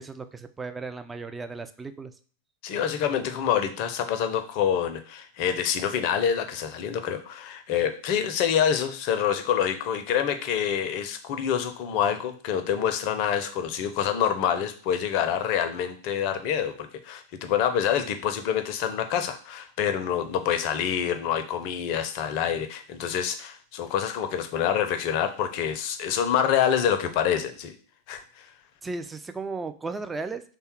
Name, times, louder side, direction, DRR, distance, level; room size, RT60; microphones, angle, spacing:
voice 1, 0.0-2.1 28.8-30.4, right 3 dB, 15° right, 9 dB, 0.3 m, -35 dB
voice 2, 2.6-27.7 28.1-28.5, left 9 dB, 45° left, 8 dB, 0.5 m, -26 dB
3.3 x 2.2 x 4.3 m, 0.43 s
figure-of-eight pair, 90°, 0 cm